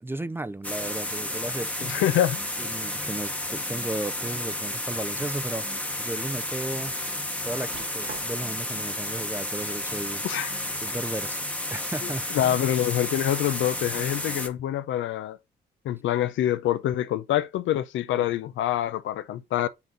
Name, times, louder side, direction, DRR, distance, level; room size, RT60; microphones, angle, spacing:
voice 1, 0.0-2.0 2.6-7.0 7.4-10.2 10.8-11.4 11.7-12.6 18.2-18.3, right 2 dB, 10° right, 0.4 m, -34 dB
sound 1, 0.6-14.5, left 1 dB, 5° left, 0.9 m, -32 dB
voice 2, 1.8-2.4 10.2-10.5 12.0-15.4 15.8-19.7, left 12 dB, 85° left, 0.6 m, -26 dB
sound 2, 4.2-4.6 5.1-5.3 5.8-5.9 7.7-8.6 10.0-10.7 11.6-11.7, right 7 dB, 90° right, 1.4 m, -47 dB
5.8 x 3.9 x 4.2 m
cardioid pair, 95°, 19 cm